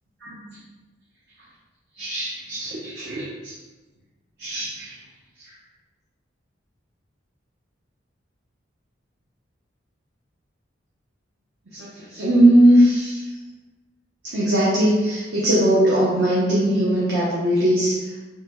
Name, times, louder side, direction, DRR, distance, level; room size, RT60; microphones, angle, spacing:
voice 1, 0.2-0.6 2.0-3.5 4.4-4.9 5.4-5.5 11.7-13.2 14.2-18.2, right 1 dB, 60° right, -7 dB, 0.6 m, -20 dB
3.1 x 3.0 x 2.2 m, 1.2 s
head